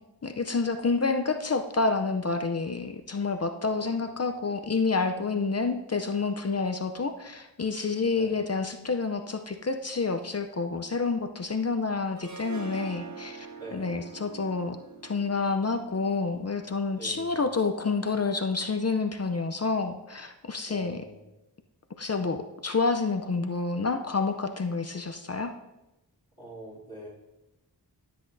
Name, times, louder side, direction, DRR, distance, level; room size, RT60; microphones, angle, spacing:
voice 1, 0.2-13.5 13.7-14.8 15.0-21.0 22.0-25.5, left 4 dB, 40° left, 7 dB, 0.6 m, -28 dB
voice 2, 3.7-4.1 8.1-8.5 13.6-14.0 17.0-17.4 20.7-21.2 26.4-27.1, right 1 dB, 20° right, -10 dB, 3.5 m, -44 dB
Harp, 12.2-17.2, right 5 dB, 45° right, 1.0 m, -44 dB
13.0 x 7.8 x 2.7 m, 0.98 s
wide cardioid pair, 45°, 40 cm